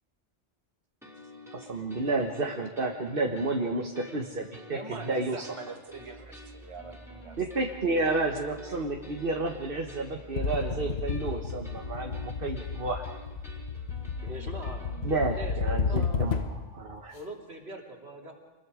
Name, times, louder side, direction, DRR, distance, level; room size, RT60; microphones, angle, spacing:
sound 1, 1.0-15.3, equal, ahead, 4.7 m, -50 dB
voice 1, 1.5-4.8 5.0-5.5 7.4-13.0 15.0-17.1, right 2 dB, 55° right, 2 dB, 1.6 m, -31 dB
voice 2, 4.7-7.4, right 3 dB, 30° right, 2 dB, 1.8 m, -43 dB
sound 2, 5.9-14.6, right 1 dB, 50° left, 8.1 m, -50 dB
sound 3, 10.4-16.7, left 5 dB, 75° left, 1.3 m, -32 dB
voice 3, 14.2-14.9 15.4-16.3 17.1-18.3, right 2 dB, 75° right, -1 dB, 3.5 m, -42 dB
27.5 x 21.0 x 5.0 m, 1.1 s
omnidirectional pair, 1.1 m